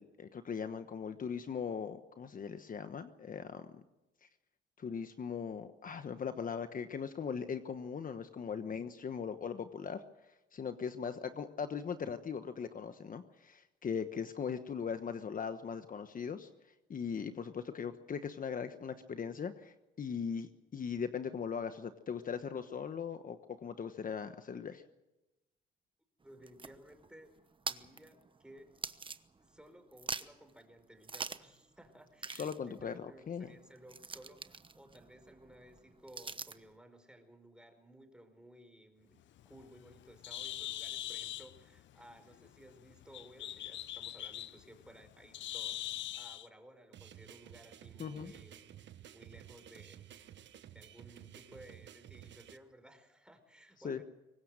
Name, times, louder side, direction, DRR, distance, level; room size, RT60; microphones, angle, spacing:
voice 1, 0.0-3.7 4.2-4.3 4.8-10.0 10.5-16.5 16.9-24.8 32.3-33.5 48.0-48.3 53.8-54.0, left 6 dB, 45° left, 9 dB, 1.2 m, -39 dB
voice 2, 26.2-27.3 27.7-28.7 29.4-48.7 49.1-50.1 50.7-54.0, right 1 dB, 5° right, 7 dB, 4.9 m, -57 dB
sound 1, 26.2-29.6 29.9-30.5 31.0-31.6 31.8-31.9 32.2-36.7, right 4 dB, 25° right, 1.0 m, -45 dB
Bird, 39.2-46.5, left 12 dB, 70° left, 0.8 m, -43 dB
sound 2, 46.9-52.6, right 11 dB, 65° right, 1.3 m, -53 dB
24.0 x 19.5 x 6.6 m, 1.0 s
cardioid pair, 90°, 20 cm